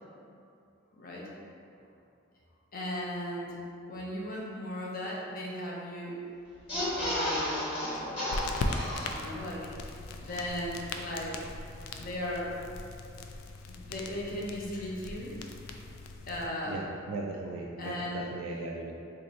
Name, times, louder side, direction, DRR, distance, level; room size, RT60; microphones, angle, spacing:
voice 1, 0.9-1.3 2.7-3.6 3.9-6.2 7.0-8.3 9.1-11.5 12.0-12.5 13.6-15.3 16.3-16.9 17.8-18.3, left 1 dB, 45° left, -4 dB, 0.6 m, -37 dB
sound 1, 6.6-9.5 9.9-10.0 10.2-10.4, left 1 dB, 25° left, 1.1 m, -33 dB
sound 2, 8.3-16.5, left 2 dB, 85° left, 0.3 m, -39 dB
voice 2, 16.7-19.0, right 2 dB, 75° right, -1 dB, 0.3 m, -38 dB
2.8 x 2.5 x 4.1 m, 2.6 s
head